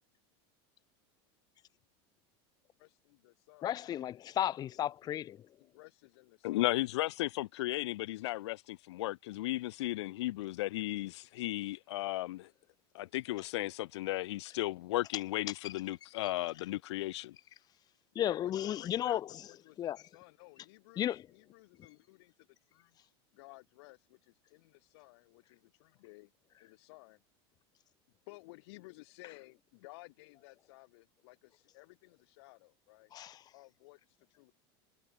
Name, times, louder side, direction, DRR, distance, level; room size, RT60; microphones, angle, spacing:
voice 1, 2.8-3.7 4.7-5.1 5.6-6.7 18.1-23.0 23.3-26.3 26.6-27.2 28.3-33.1 33.5-34.5, left 24 dB, 70° left, 2.5 m, -56 dB
voice 2, 3.6-5.5 15.6-15.7 18.2-19.2 19.8-20.0 21.0-21.2 33.1-33.4, left 11 dB, 30° left, 0.6 m, -34 dB
voice 3, 6.4-12.5 12.9-17.4, left 17 dB, 90° left, 0.6 m, -35 dB
supercardioid pair, 135°, 14 cm